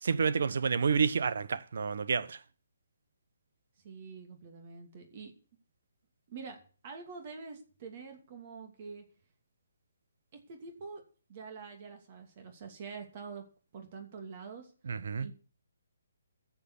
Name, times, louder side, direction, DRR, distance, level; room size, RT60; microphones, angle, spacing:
voice 1, 0.0-2.4 14.9-15.3, right 5 dB, 65° right, 1.0 m, -29 dB
voice 2, 3.8-5.3 6.3-6.6 6.8-9.0 10.5-11.0 11.3-13.4 13.7-14.7 15.2-15.3, right 5 dB, 40° right, 2.7 m, -46 dB
11.5 x 7.2 x 8.4 m
hypercardioid pair, 150°, 0 cm